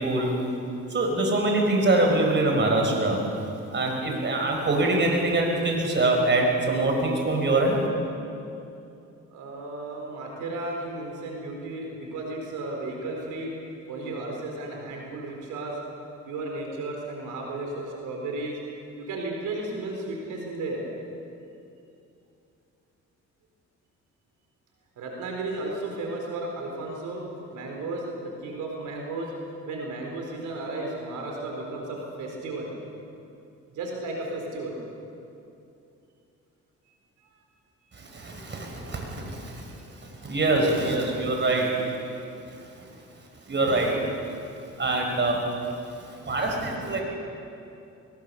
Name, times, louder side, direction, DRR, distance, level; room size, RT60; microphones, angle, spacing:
voice 1, 0.9-3.2 3.7-7.7 40.3-41.7 43.5-43.9 44.8-45.4 46.3-47.0, right 2 dB, 35° right, 1 dB, 5.2 m, -23 dB
voice 2, 9.3-13.5 13.9-15.8 16.3-18.6 19.0-20.8 25.0-27.2 27.5-29.3 29.6-32.7 33.7-34.8 39.7-39.9 46.0-46.2, right 2 dB, 80° right, 0 dB, 4.1 m, -34 dB
21.5 x 20.0 x 7.0 m, 2.7 s
cardioid pair, 90°, 30 cm